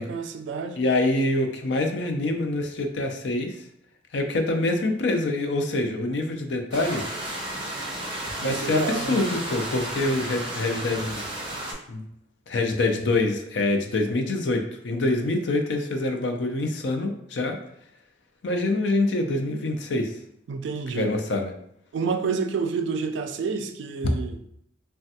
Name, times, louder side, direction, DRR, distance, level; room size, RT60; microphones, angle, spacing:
voice 1, 0.0-0.8 8.4-9.2 20.5-21.1 21.9-24.5, right 5 dB, 70° right, 8 dB, 0.3 m, -29 dB
voice 2, 0.8-3.5 4.1-7.0 8.4-11.2 11.9-12.0 12.5-17.6 18.4-20.1 20.9-21.5 24.0-24.1, left 2 dB, 65° left, 4 dB, 0.4 m, -25 dB
sound 1, 6.7-11.7, right 1 dB, 25° right, 0.7 m, -33 dB
3.3 x 2.2 x 2.7 m, 0.74 s
head